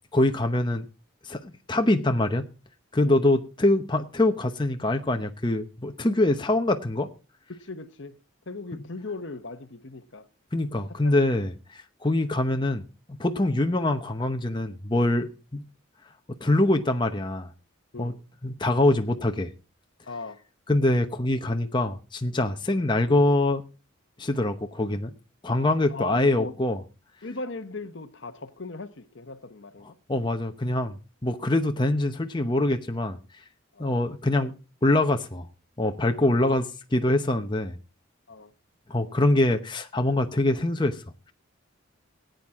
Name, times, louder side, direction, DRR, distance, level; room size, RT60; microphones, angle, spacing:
voice 1, 0.1-0.8 1.2-2.5 2.9-7.1 10.5-12.8 13.1-15.6 16.4-17.5 18.0-18.1 18.4-19.5 20.7-23.6 24.2-25.1 25.4-26.8 30.1-33.2 33.8-34.5 34.8-35.5 35.8-37.8 38.9-41.0, left 1 dB, 20° left, 0.9 m, -24 dB
voice 2, 7.5-8.2 8.5-10.3 10.9-11.2 17.9-18.2 20.0-20.4 25.9-26.5 27.2-30.0 33.7-33.9 38.3-38.5, left 3 dB, 60° left, 1.0 m, -38 dB
18.0 x 9.3 x 3.6 m
head